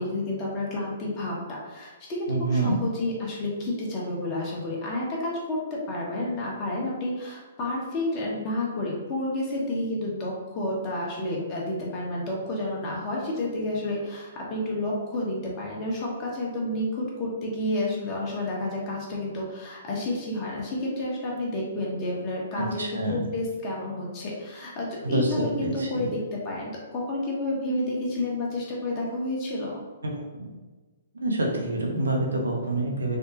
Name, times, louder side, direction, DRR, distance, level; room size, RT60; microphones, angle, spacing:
voice 1, 0.0-29.8, left 1 dB, 30° left, -3 dB, 0.9 m, -30 dB
voice 2, 2.3-2.8 22.5-23.3 25.0-26.1 30.0-30.5 31.1-33.2, right 2 dB, 80° right, 0 dB, 0.7 m, -27 dB
3.4 x 2.0 x 2.8 m, 1.3 s
figure-of-eight pair, 125°, 0 cm